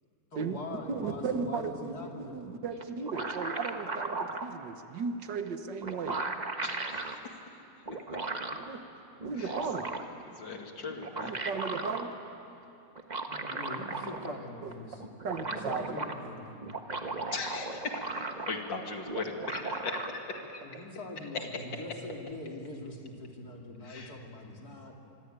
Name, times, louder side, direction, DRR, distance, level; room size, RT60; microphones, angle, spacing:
voice 1, 0.3-2.4 13.3-16.6 20.6-25.0, left 2 dB, 60° left, 1 dB, 3.3 m, -43 dB
voice 2, 0.9-6.2 8.5-8.8 9.2-9.9 11.2-12.1 14.6-14.7 15.2-15.8, right 5 dB, 75° right, 7 dB, 2.0 m, -35 dB
sound 1, 2.8-4.5 5.5-5.6 5.8-7.2 7.9-8.7 9.2-10.2 10.9-12.1 13.0-14.4 14.7-14.8 15.0-16.2 16.6-18.8 19.1-20.1, right 3 dB, 25° right, 1.3 m, -36 dB
voice 3, 6.6-7.2 9.4-9.5 10.4-11.3 17.3-20.6 21.3-21.5 23.8-24.1, left 3 dB, 90° left, 3 dB, 3.0 m, -38 dB
25.5 x 24.0 x 9.0 m, 2.8 s
omnidirectional pair, 1.9 m